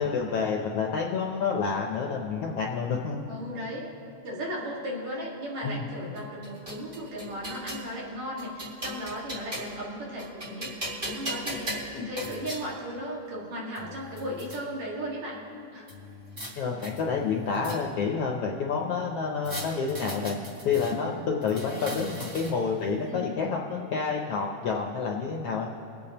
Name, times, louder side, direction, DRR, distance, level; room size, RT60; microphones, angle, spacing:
voice 1, 0.0-3.2 5.6-5.9 11.9-12.1 16.6-20.4 20.6-25.7, left 5 dB, 75° left, 0 dB, 1.4 m, -29 dB
voice 2, 3.3-3.9 4.2-10.7 11.0-11.7 12.1-15.4 15.7-15.9 21.7-22.0 23.1-23.3, equal, 70° right, -4 dB, 3.1 m, -36 dB
sound 1, 6.2-7.9 8.4-9.8 10.2-12.6 13.4-13.5 13.8-14.6 15.9-16.5 16.8-18.1 19.4-20.9 21.4-22.7, equal, 25° right, 1.2 m, -38 dB
24.0 x 8.5 x 2.9 m, 2.6 s
omnidirectional pair, 3.4 m